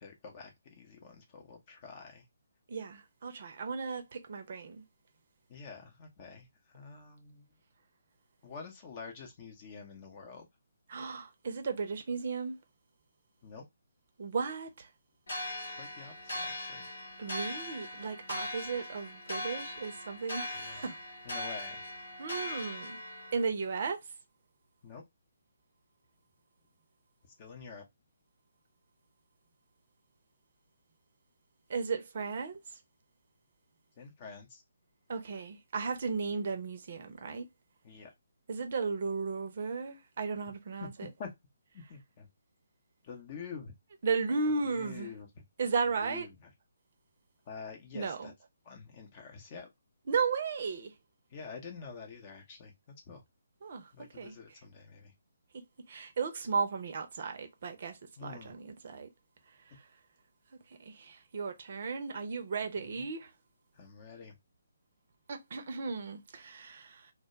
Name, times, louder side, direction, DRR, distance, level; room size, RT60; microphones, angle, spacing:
voice 1, 0.0-2.2 5.5-7.5 8.4-10.5 13.4-13.6 15.7-16.9 20.5-20.8 21.2-21.8 24.8-25.0 27.4-27.9 34.0-34.6 37.8-38.1 40.8-41.3 41.7-42.3 43.0-43.7 44.5-45.3 46.0-46.5 47.5-48.3 48.6-49.7 51.3-53.2 53.9-55.1 58.2-58.6 62.8-63.1 63.7-64.3, left 5 dB, 35° left, 0.7 m, -47 dB
voice 2, 2.7-4.8 10.9-12.6 14.2-14.9 17.2-21.0 22.2-23.0 23.3-24.0 31.7-32.6 35.1-37.5 38.5-41.1 44.0-45.1 45.6-46.3 47.9-48.3 50.1-50.9 53.6-53.9 54.2-54.3 55.5-59.1 60.8-63.3 65.3-67.1, right 5 dB, 50° right, 0.6 m, -35 dB
sound 1, 15.3-23.5, left 1 dB, 65° left, 1.0 m, -40 dB
2.2 x 2.2 x 2.8 m
figure-of-eight pair, 140°, 0 cm